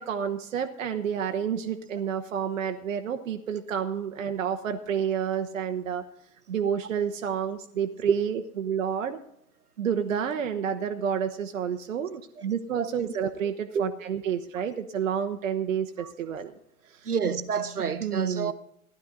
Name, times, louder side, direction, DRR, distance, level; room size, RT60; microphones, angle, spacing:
voice 1, 0.0-6.0 6.5-9.2 9.8-16.5 16.9-17.1 18.0-18.5, right 8 dB, 60° right, 1.0 m, -29 dB
voice 2, 17.0-18.5, right 6 dB, 85° right, 1.0 m, -29 dB
15.5 x 11.0 x 3.9 m
figure-of-eight pair, 110°, 44 cm